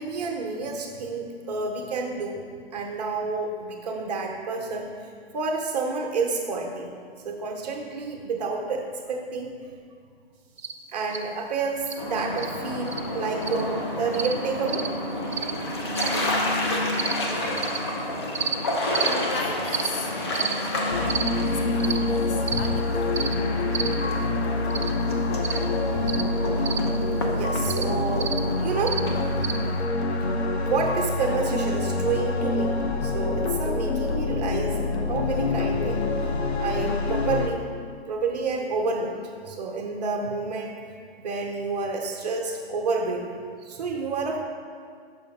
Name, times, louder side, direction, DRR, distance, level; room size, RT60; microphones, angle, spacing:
voice 1, 0.0-2.4 2.7-6.9 7.2-9.5 10.9-14.9 27.3-29.2 30.7-32.7 33.0-34.8 35.1-36.1 36.6-37.7 38.1-39.2 39.5-40.9 41.2-43.2 43.6-44.4, right 4 dB, 40° right, 1 dB, 0.8 m, -29 dB
sound 1, 10.6-10.7 11.1-11.2 11.9-12.0 12.4-12.5 12.9-13.0 13.4-13.6 14.1-14.3 14.7-14.9 15.3-15.5 15.9-16.2 16.9-17.1 17.6-17.8 18.3-18.6 18.9-19.1 19.7-19.9 20.3-20.5 21.1-21.3 21.8-22.0 22.5-22.7 23.1-23.4 23.7-24.0 24.7-24.9 25.4-25.6 26.1-26.2 26.6-26.8 27.7-27.8 28.2-28.4 28.9-29.0 29.4-29.6, right 7 dB, 70° right, 0.9 m, -30 dB
sound 2, 12.0-29.7, left 1 dB, 25° left, 0.5 m, -30 dB
voice 2, 17.3-17.6 19.3-21.0 21.4-23.1, left 3 dB, 60° left, 2 dB, 0.9 m, -38 dB
sound 3, 20.9-37.5, left 3 dB, 90° left, 0.7 m, -26 dB
6.2 x 5.6 x 3.5 m, 2.1 s
hypercardioid pair, 150°, 32 cm